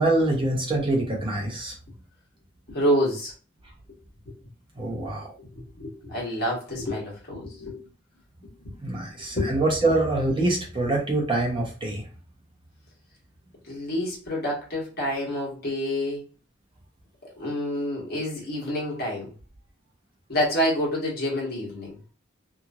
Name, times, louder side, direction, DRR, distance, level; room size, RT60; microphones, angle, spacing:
voice 1, 0.0-1.7 4.8-5.3 8.8-12.0, right 2 dB, 25° right, -1 dB, 0.8 m, -25 dB
voice 2, 2.7-3.3 4.2-4.3 4.9-5.1 5.4-5.5 5.8-7.8 8.6-8.7 9.3-9.5 13.7-16.2 17.4-19.3 20.3-21.9, equal, 50° left, -3 dB, 1.3 m, -28 dB
2.9 x 2.5 x 2.4 m, 0.36 s
head